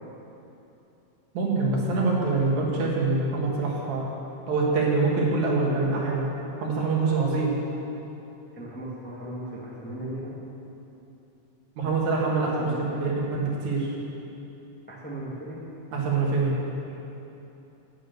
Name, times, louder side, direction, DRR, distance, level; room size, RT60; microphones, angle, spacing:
voice 1, 1.3-4.0 4.5-6.3 6.6-7.5 11.8-14.0 15.9-16.5, right 3 dB, 70° right, -3 dB, 3.2 m, -25 dB
voice 2, 8.5-10.3 12.4-13.2 14.9-15.6 16.9-17.0, right 1 dB, 15° left, -4 dB, 0.4 m, -37 dB
11.0 x 8.8 x 6.7 m, 3.0 s
omnidirectional pair, 3.5 m